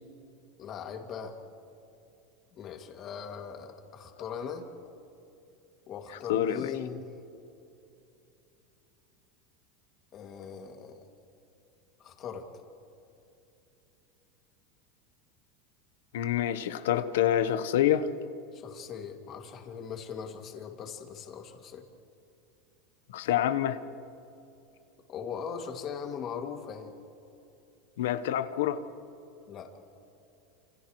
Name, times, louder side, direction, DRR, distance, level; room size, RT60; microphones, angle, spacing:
voice 1, 0.6-1.4 2.5-4.7 5.9-7.1 10.1-11.1 12.0-12.5 18.5-21.9 25.1-26.9 29.5-29.7, left 7 dB, 35° left, 3 dB, 2.4 m, -40 dB
voice 2, 6.3-6.7 16.1-18.1 23.1-23.8 28.0-28.8, left 11 dB, 85° left, 11 dB, 1.0 m, -27 dB
29.5 x 27.5 x 3.2 m, 2.7 s
supercardioid pair, 150°, 0 cm